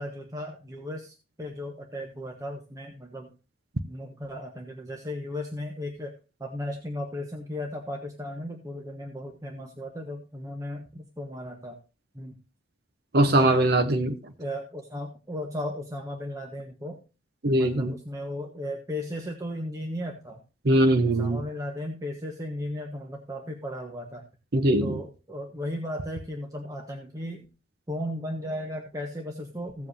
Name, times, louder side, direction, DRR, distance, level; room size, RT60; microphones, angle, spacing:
voice 1, 0.0-3.3 3.9-6.1 6.4-11.8 12.1-12.4 13.3-13.7 14.4-17.0 17.5-20.4 21.2-24.2 24.8-27.5 27.9-29.9, left 1 dB, 20° right, 1 dB, 1.2 m, -36 dB
voice 2, 13.1-14.2 17.4-17.9 20.6-21.4 24.5-24.9, right 1 dB, 60° right, 6 dB, 0.9 m, -21 dB
16.0 x 7.5 x 2.7 m, 0.31 s
head